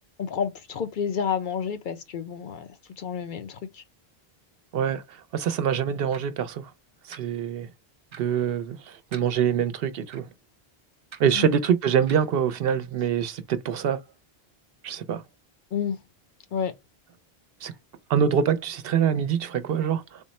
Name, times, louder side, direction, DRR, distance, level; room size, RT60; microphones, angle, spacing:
voice 1, 0.2-2.7 3.0-3.8 11.3-11.5 15.7-16.0 16.5-16.7, left 7 dB, 60° left, 0.7 m, -30 dB
voice 2, 4.7-6.7 7.1-7.7 8.2-10.3 11.2-14.0 14.8-15.2 17.6-17.7 18.1-20.2, right 8 dB, 70° right, 0.8 m, -25 dB
sound 1, 6.1-6.2 7.1-7.2 8.1-8.2 9.1-9.3 10.1-10.2 11.1-11.2 12.1-12.3, right 6 dB, 50° right, 0.3 m, -43 dB
3.6 x 2.0 x 4.0 m
omnidirectional pair, 1.0 m